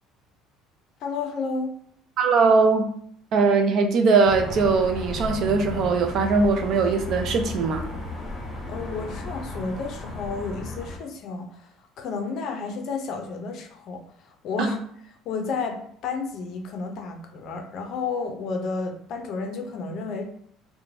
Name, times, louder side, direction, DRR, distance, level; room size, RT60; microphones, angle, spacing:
voice 1, 1.0-1.7 8.7-11.7 12.0-14.8 15.3-20.2, left 4 dB, 50° left, 4 dB, 0.4 m, -31 dB
voice 2, 2.2-2.9 3.3-7.9 14.6-14.7, right 4 dB, 45° right, 5 dB, 0.4 m, -20 dB
sound 1, 4.2-11.0, left 3 dB, 20° left, 0.8 m, -34 dB
2.6 x 2.1 x 3.0 m, 0.65 s
cardioid pair, 165°, 0 cm